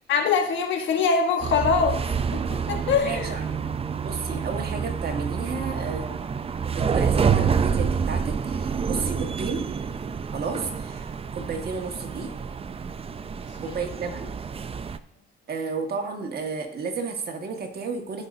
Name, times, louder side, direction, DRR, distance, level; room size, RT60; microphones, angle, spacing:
voice 1, 0.1-2.0 2.3-3.4 13.6-13.8, left 5 dB, 70° left, 4 dB, 1.3 m, -23 dB
sound 1, 1.4-15.0, right 6 dB, 30° right, 0.5 m, -28 dB
voice 2, 3.0-3.6 4.0-6.2 6.6-9.7 10.3-12.3 13.6-14.3 15.5-18.3, right 4 dB, 50° right, 3 dB, 1.6 m, -32 dB
15.5 x 5.4 x 2.7 m, 0.68 s
cardioid pair, 90°, 20 cm